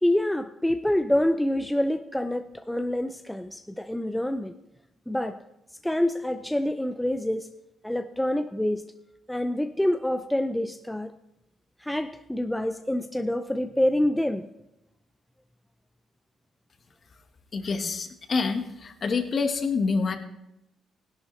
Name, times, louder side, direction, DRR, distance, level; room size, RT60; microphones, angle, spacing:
voice 1, 0.0-4.5 5.1-5.4 5.8-7.5 7.8-8.9 9.3-11.1 11.8-14.5, left 1 dB, 5° left, 8 dB, 0.5 m, -26 dB
voice 2, 17.5-20.2, left 4 dB, 45° left, 6 dB, 1.4 m, -27 dB
16.5 x 11.5 x 3.2 m, 0.86 s
cardioid pair, 90°, 0 cm